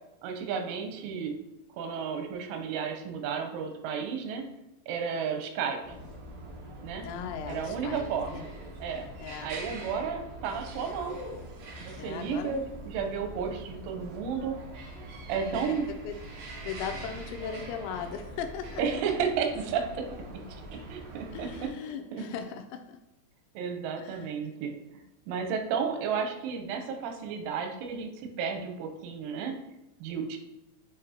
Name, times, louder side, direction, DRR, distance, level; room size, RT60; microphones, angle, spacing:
voice 1, 0.2-1.3 1.8-4.5 4.9-5.9 6.8-7.0 7.5-8.5 8.8-9.1 9.4-11.2 11.8-14.6 15.3-15.9 18.8-20.4 20.9-22.3 23.5-24.7 25.3-29.6 30.0-30.4, right 6 dB, 85° right, 5 dB, 3.3 m, -32 dB
sound 1, 5.8-21.7, right 1 dB, 65° right, 2.5 m, -43 dB
voice 2, 7.0-8.1 8.3-8.5 9.2-9.5 12.0-12.6 15.4-16.1 16.7-18.8 21.3-23.0 24.0-24.3, left 7 dB, 85° left, 7 dB, 2.8 m, -38 dB
7.7 x 5.0 x 2.8 m, 0.90 s
omnidirectional pair, 5.4 m